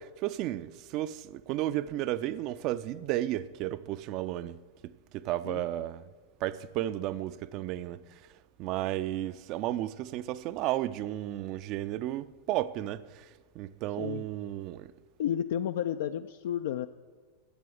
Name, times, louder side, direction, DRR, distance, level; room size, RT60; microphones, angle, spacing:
voice 1, 0.2-6.1 6.4-8.2 8.6-13.3 13.6-14.9, right 14 dB, 40° right, 0.4 m, -33 dB
voice 2, 15.2-16.9, left 10 dB, 55° left, 0.3 m, -32 dB
12.0 x 7.6 x 7.9 m
figure-of-eight pair, 90°, 0 cm